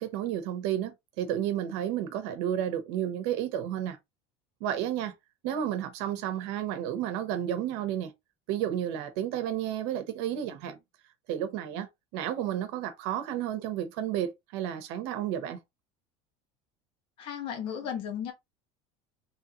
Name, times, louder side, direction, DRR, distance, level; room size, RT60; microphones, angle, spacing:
voice 1, 0.0-4.0 4.6-5.1 5.4-8.1 8.5-10.8 11.3-15.6, right 10 dB, 70° right, 0.9 m, -32 dB
voice 2, 17.2-18.3, left 8 dB, 40° left, 1.2 m, -35 dB
3.8 x 3.3 x 2.9 m
cardioid pair, 165°, 14 cm